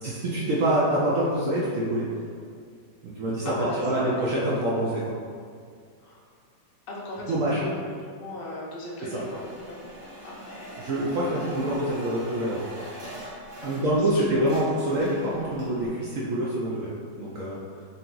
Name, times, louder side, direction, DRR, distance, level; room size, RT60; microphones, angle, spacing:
voice 1, 0.0-2.1 3.0-5.1 7.3-7.6 9.1-9.2 10.8-12.6 13.6-16.9 17.2-17.6, right 1 dB, 70° right, -6 dB, 0.7 m, -26 dB
voice 2, 3.4-4.5 6.0-6.2 6.9-9.8 10.2-10.9 13.6-14.3 17.7-17.8, left 1 dB, 55° left, -4 dB, 0.6 m, -37 dB
sound 1, 9.1-14.1 14.4-15.9, equal, 55° right, 1.7 m, -42 dB
3.9 x 2.8 x 3.8 m, 2.2 s
omnidirectional pair, 2.0 m